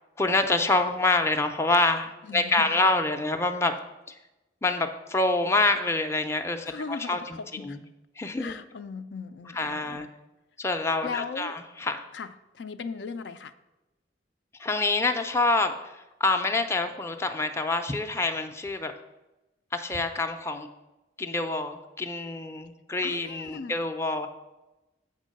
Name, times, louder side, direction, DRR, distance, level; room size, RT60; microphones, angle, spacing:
voice 1, 0.2-3.7 4.6-7.8 8.2-8.6 9.5-10.1 10.6-12.0 14.6-18.9 19.7-20.7 21.2-24.3, left 2 dB, 15° left, 6 dB, 0.4 m, -26 dB
voice 2, 2.2-2.8 6.6-7.8 8.4-10.1 11.0-11.5 12.1-12.3 12.5-13.5 23.0-23.7, left 5 dB, 75° left, 10 dB, 0.4 m, -38 dB
7.3 x 4.6 x 6.3 m, 1.0 s
head